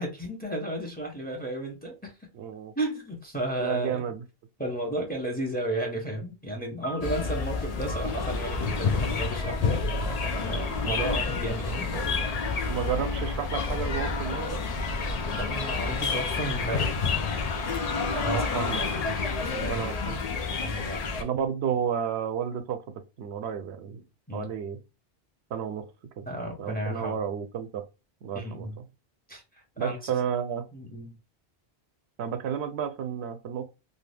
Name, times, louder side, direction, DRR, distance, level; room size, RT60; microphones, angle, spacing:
voice 1, 0.0-2.1 2.8-4.1 4.6-12.3 15.3-17.7 18.1-19.0 19.4-19.9 20.6-21.3 24.3-24.5 26.3-27.2 28.3-28.8 29.3-30.1 30.7-31.2, right 1 dB, 10° left, 0.8 m, -34 dB
voice 2, 2.3-2.7 3.6-4.2 7.3-7.4 10.8-11.1 12.6-14.6 18.2-18.8 19.3-20.2 21.2-24.0 24.3-24.8 25.5-25.9 26.2-26.3 26.6-27.8 28.2-28.7 29.8-30.7 32.2-33.7, right 8 dB, 80° right, 0.8 m, -32 dB
sound 1, 6.8-13.3, right 1 dB, 75° left, 1.0 m, -49 dB
sound 2, 7.0-21.2, left 4 dB, 55° left, 0.5 m, -29 dB
2.7 x 2.3 x 3.3 m
omnidirectional pair, 1.1 m